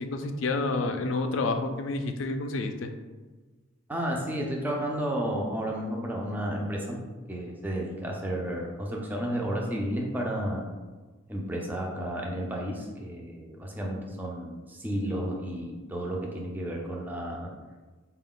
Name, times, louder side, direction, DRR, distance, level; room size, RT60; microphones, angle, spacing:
voice 1, 0.0-2.9, left 3 dB, 65° left, 7 dB, 0.4 m, -29 dB
voice 2, 3.9-7.0 7.3-10.7 11.3-17.5, right 1 dB, 10° right, -1 dB, 0.4 m, -32 dB
4.3 x 2.3 x 3.7 m, 1.3 s
head